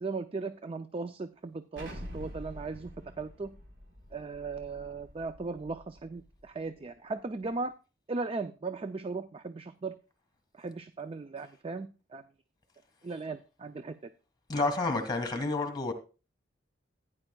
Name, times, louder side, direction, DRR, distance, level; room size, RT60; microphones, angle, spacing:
voice 1, 0.0-2.9 3.2-3.5 4.1-7.7 8.1-10.0 10.5-12.2 13.0-14.0, right 3 dB, 30° right, 0.4 m, -37 dB
Explosion, 1.8-6.5, equal, 70° right, 3.9 m, -47 dB
voice 2, 14.5-15.9, left 3 dB, 20° left, 2.1 m, -30 dB
16.0 x 9.9 x 2.3 m
head